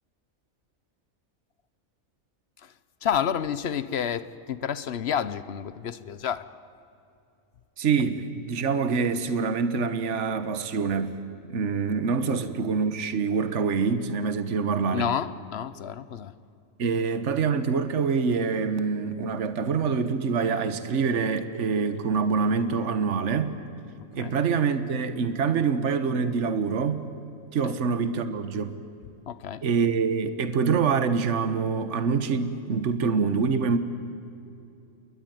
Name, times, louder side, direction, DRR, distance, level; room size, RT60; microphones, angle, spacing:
voice 1, 3.0-6.4 12.2-12.4 14.9-16.3 24.2-24.4 27.6-27.8 29.3-29.6, left 8 dB, 55° left, 15 dB, 1.0 m, -30 dB
voice 2, 7.8-11.1 11.5-15.1 16.8-23.6 24.1-27.1 27.5-28.7 29.6-33.8, right 5 dB, 60° right, 11 dB, 1.5 m, -25 dB
28.0 x 22.0 x 9.4 m, 2.7 s
omnidirectional pair, 1.4 m